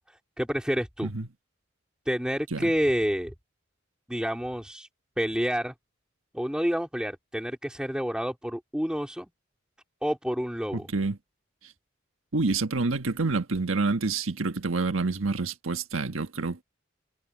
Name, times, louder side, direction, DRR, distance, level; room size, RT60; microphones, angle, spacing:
voice 1, 0.4-1.1 2.1-3.3 4.1-4.9 5.2-5.7 6.3-9.3 10.0-10.9, equal, 5° right, 2.9 m, -28 dB
voice 2, 10.7-11.2 12.3-16.6, right 3 dB, 80° right, 1.4 m, -28 dB
head